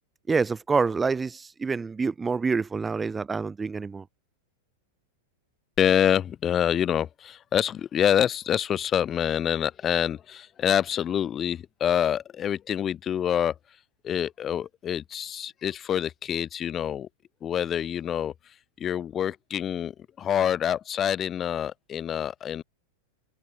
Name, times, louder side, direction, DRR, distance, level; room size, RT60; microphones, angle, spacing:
voice 1, 0.3-4.0, right 4 dB, 15° right, 4.8 m, -27 dB
voice 2, 5.8-13.5 14.0-17.1 17.4-18.3 18.8-22.6, left 9 dB, 30° left, 1.1 m, -26 dB
hypercardioid pair, 105°, 0 cm